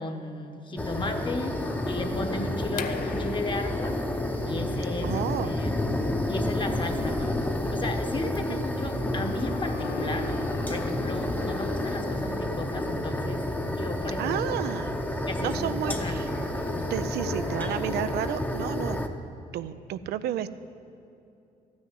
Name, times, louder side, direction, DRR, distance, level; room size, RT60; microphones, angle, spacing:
voice 1, 0.0-4.0 4.5-5.1 5.4-5.9 6.3-10.3 10.7-14.4 15.3-16.3 16.7-16.9, left 2 dB, 30° left, 6 dB, 1.1 m, -35 dB
sound 1, 0.8-19.1, left 1 dB, 10° left, 0.8 m, -30 dB
sound 2, 0.9-18.9, left 4 dB, 85° left, 1.2 m, -43 dB
sound 3, 2.7-8.3, left 7 dB, 55° left, 0.7 m, -43 dB
voice 2, 5.0-5.6 8.5-8.7 14.2-15.0 15.4-16.2 16.9-19.0 19.5-20.5, right 11 dB, 85° right, 12 dB, 0.5 m, -31 dB
13.0 x 6.3 x 9.6 m, 2.7 s
cardioid pair, 95°, 16 cm